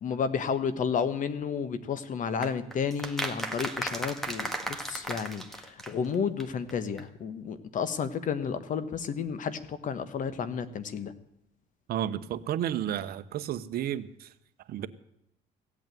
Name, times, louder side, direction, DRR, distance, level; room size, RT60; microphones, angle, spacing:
voice 1, 0.0-11.1, left 6 dB, 50° left, 13 dB, 1.3 m, -32 dB
sound 1, 2.4-6.4 6.7-6.8 7.0-7.1, right 1 dB, ahead, 1.7 m, -35 dB
voice 2, 11.9-14.3 14.7-14.9, right 11 dB, 65° right, 12 dB, 0.9 m, -32 dB
16.0 x 8.5 x 9.1 m, 0.79 s
cardioid pair, 110°, 17 cm